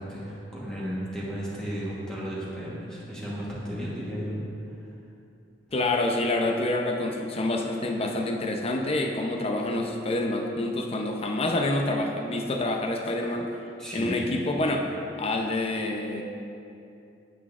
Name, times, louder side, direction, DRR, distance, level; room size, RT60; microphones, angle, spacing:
voice 1, 0.0-4.4 4.7-4.9 13.8-14.4, equal, 5° left, -8 dB, 1.2 m, -34 dB
voice 2, 5.7-13.5 13.9-14.9 15.2-16.2, left 2 dB, 35° left, 2 dB, 0.6 m, -27 dB
9.2 x 8.3 x 2.5 m, 2.6 s
head